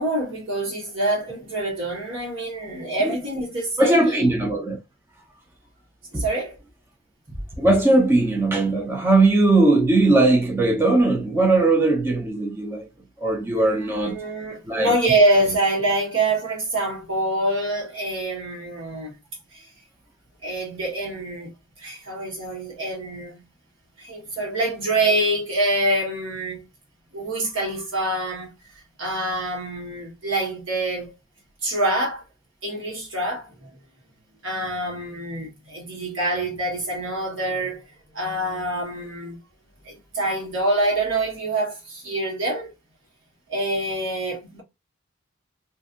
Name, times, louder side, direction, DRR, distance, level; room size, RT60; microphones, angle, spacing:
voice 1, 0.0-4.3 6.1-6.6 13.7-19.1 19.5-19.7 20.4-21.5 21.8-23.4 24.0-26.6 27.1-28.5 29.0-31.1 31.6-32.2 32.6-33.8 34.4-37.8 38.1-39.4 39.8-42.7 43.5-44.6, right 1 dB, 70° right, 1.3 m, -25 dB
voice 2, 3.8-4.8 6.1-6.2 7.6-12.9 13.2-14.2 14.7-14.9, right 2 dB, 10° right, 0.5 m, -19 dB
2.5 x 2.5 x 2.5 m
head